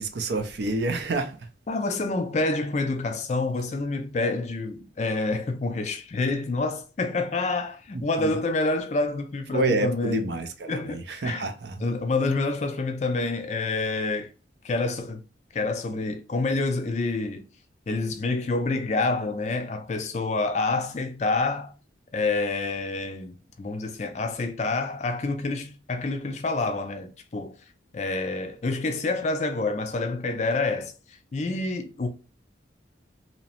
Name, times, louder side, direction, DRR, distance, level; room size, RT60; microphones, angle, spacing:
voice 1, 0.0-1.5 8.2-8.3 9.5-11.8, right 3 dB, 65° right, 0.4 m, -28 dB
voice 2, 1.7-10.3 10.7-11.4 11.8-14.3 14.6-15.2 15.5-17.5 17.9-21.7 22.1-27.6 27.9-32.1, left 3 dB, 35° left, 0.4 m, -27 dB
2.8 x 2.0 x 2.8 m
head